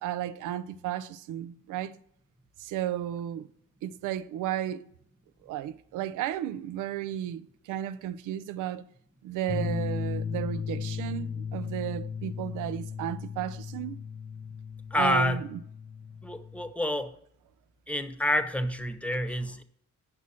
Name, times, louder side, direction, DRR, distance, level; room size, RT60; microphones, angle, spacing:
voice 1, 0.0-2.0 2.6-3.5 3.8-4.8 5.4-8.8 9.2-14.0 15.0-15.6, right 11 dB, 90° right, 0.6 m, -34 dB
sound 1, 9.5-16.7, left 6 dB, 35° left, 0.8 m, -36 dB
voice 2, 14.9-15.4 16.2-17.1 17.9-19.6, left 1 dB, 5° left, 0.9 m, -28 dB
9.8 x 6.2 x 4.2 m
cardioid pair, 90°, 30 cm